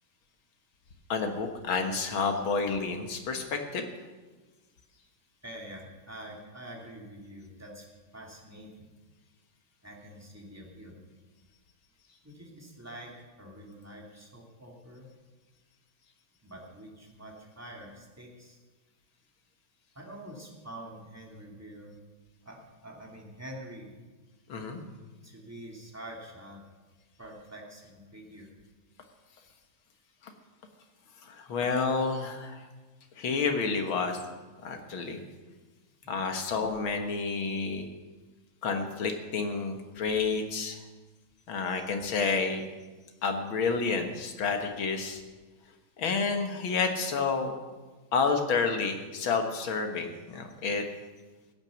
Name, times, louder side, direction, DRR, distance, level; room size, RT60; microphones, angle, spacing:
voice 1, 1.1-3.8 24.5-24.8 31.2-32.7 33.2-34.2 34.6-35.2 36.1-37.9 38.6-40.8 41.5-42.6 43.2-45.2 46.0-47.5 48.1-50.9, left 4 dB, 75° left, 5 dB, 2.3 m, -29 dB
voice 2, 5.4-7.9 8.1-8.9 9.8-11.0 12.2-15.1 16.4-18.6 19.9-22.0 22.4-23.9 25.2-26.6 27.2-28.5 36.0-36.3, right 1 dB, 5° right, -1 dB, 2.4 m, -46 dB
16.0 x 9.0 x 7.0 m, 1.3 s
omnidirectional pair, 2.2 m